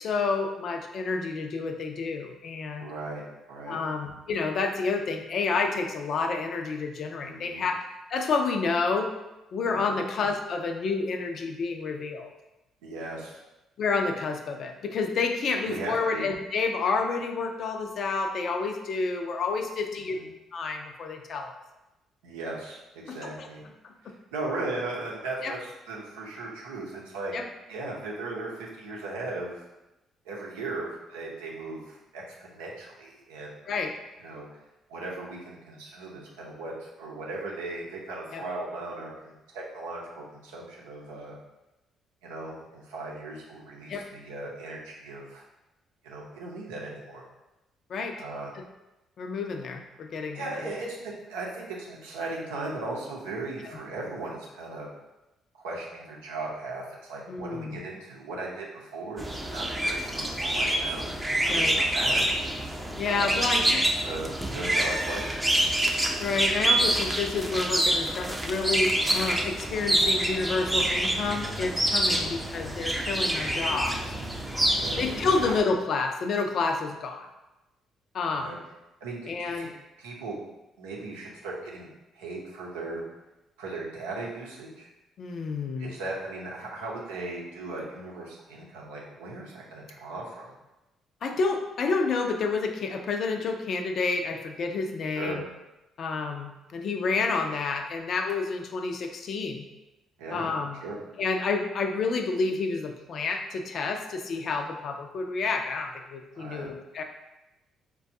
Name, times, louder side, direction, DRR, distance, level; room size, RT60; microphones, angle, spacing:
voice 1, 0.0-2.9 3.7-7.8 8.1-9.1 9.5-12.3 13.8-20.2 20.5-21.5 23.1-23.5 23.8-23.9 25.4-25.5 27.3-27.4 33.7-33.9 38.3-38.4 43.9-44.0 47.9-48.2 49.2-50.7 53.6-53.8 57.3-57.8 61.5-61.7 63.0-63.8 66.2-74.0 75.0-77.3 78.1-78.5 79.3-79.7 85.2-86.0 91.2-95.4 96.0-99.6 100.3-100.8 101.2-107.0, left 4 dB, 60° left, 4 dB, 0.4 m, -29 dB
voice 2, 2.8-3.2 3.5-3.8 7.2-7.6 9.6-9.9 12.8-13.4 15.6-16.3 19.9-20.3 22.2-23.6 24.0-27.3 27.7-29.6 30.2-33.5 34.2-34.6 34.9-41.4 42.2-45.4 46.0-47.3 48.2-48.5 50.3-54.9 55.5-62.2 63.0-65.7 72.0-72.3 74.8-75.0 75.4-75.5 78.3-78.6 79.0-79.7 80.0-80.4 80.8-81.9 82.1-83.0 83.6-84.9 85.8-90.5 95.1-95.4 100.2-100.5 100.8-101.0 106.3-106.7, right 2 dB, 85° right, -3 dB, 0.7 m, -37 dB
sound 1, 59.2-75.6, right 1 dB, 15° right, 0.5 m, -27 dB
4.5 x 2.2 x 2.7 m, 0.98 s
hypercardioid pair, 55°, 0 cm